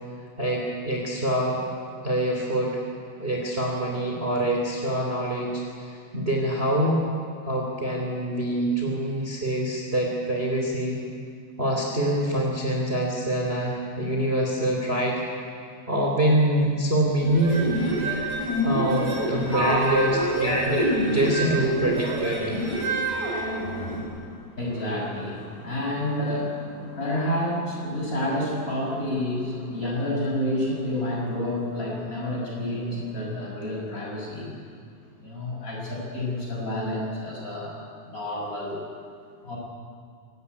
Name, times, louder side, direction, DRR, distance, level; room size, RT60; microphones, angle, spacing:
voice 1, 0.4-1.6 2.0-2.8 3.2-7.0 7.5-11.0 11.6-15.2 15.9-17.6 18.6-20.8 21.1-22.6, right 1 dB, 20° right, 0 dB, 2.9 m, -25 dB
sound 1, 17.2-24.0, right 1 dB, 65° right, 6.8 m, -27 dB
voice 2, 18.2-20.8 22.0-22.1 23.0-23.2 23.5-34.5 35.2-38.8 39.4-39.6, left 1 dB, 25° left, -2 dB, 7.1 m, -30 dB
24.0 x 18.5 x 9.6 m, 2.2 s
omnidirectional pair, 3.4 m